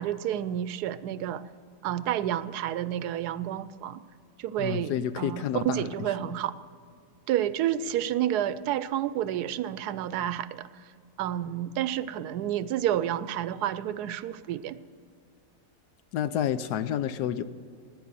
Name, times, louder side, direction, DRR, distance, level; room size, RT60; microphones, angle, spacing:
voice 1, 0.0-1.4 1.8-4.0 4.4-6.6 7.3-10.7 11.2-14.8, right 11 dB, 80° right, 15 dB, 1.1 m, -30 dB
voice 2, 4.6-6.0 16.1-17.4, left 10 dB, 80° left, 13 dB, 1.2 m, -29 dB
16.5 x 10.0 x 6.9 m, 2.2 s
omnidirectional pair, 1.7 m